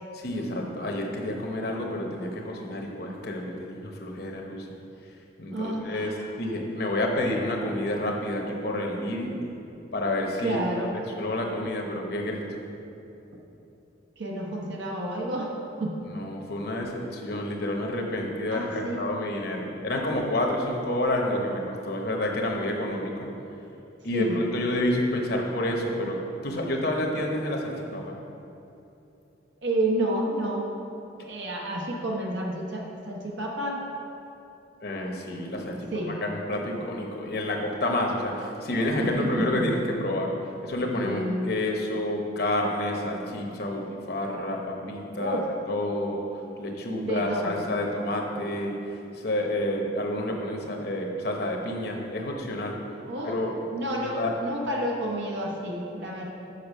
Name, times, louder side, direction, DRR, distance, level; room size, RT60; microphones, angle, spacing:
voice 1, 0.2-4.7 5.4-6.1 6.4-9.3 9.9-10.6 11.2-12.6 16.1-23.3 24.0-28.1 34.8-40.3 40.6-46.2 46.6-48.7 49.1-52.8 53.2-53.5 54.0-54.4, left 1 dB, 55° left, 1 dB, 0.9 m, -29 dB
voice 2, 5.5-6.3 10.4-10.9 14.2-15.5 15.8-16.1 18.5-19.0 24.1-24.4 29.6-30.7 31.2-33.8 35.9-36.2 39.0-39.7 40.9-41.5 45.2-45.5 47.0-47.6 53.1-53.4 53.7-56.3, right 1 dB, 75° right, -2 dB, 0.9 m, -30 dB
6.7 x 5.5 x 5.4 m, 2.8 s
head